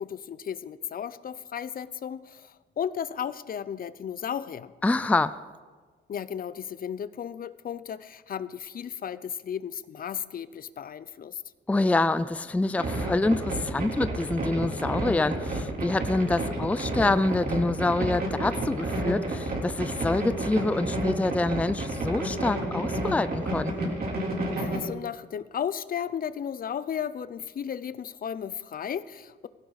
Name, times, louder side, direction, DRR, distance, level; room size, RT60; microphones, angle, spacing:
voice 1, 0.0-4.7 6.1-11.4 24.5-29.5, left 8 dB, 45° left, 15 dB, 0.6 m, -34 dB
voice 2, 4.8-5.3 11.7-23.9, left 2 dB, 5° left, 14 dB, 0.4 m, -26 dB
sound 1, 12.8-24.8, right 1 dB, 50° right, 3.5 m, -30 dB
16.0 x 16.0 x 4.1 m, 1.4 s
cardioid pair, 90°, 20 cm